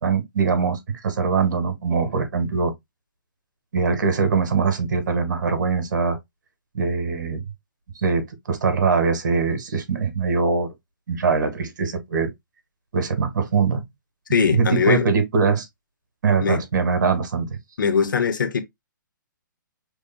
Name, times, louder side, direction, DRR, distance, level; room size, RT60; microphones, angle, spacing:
voice 1, 0.0-2.7 3.7-6.2 6.7-7.4 8.0-10.7 11.1-12.3 12.9-13.8 14.5-15.7 16.2-17.6, right 5 dB, 60° right, 1.8 m, -22 dB
voice 2, 14.3-15.1 16.4-16.6 17.8-18.6, left 6 dB, 70° left, 1.1 m, -21 dB
6.3 x 3.4 x 2.2 m
hypercardioid pair, 155°, 11 cm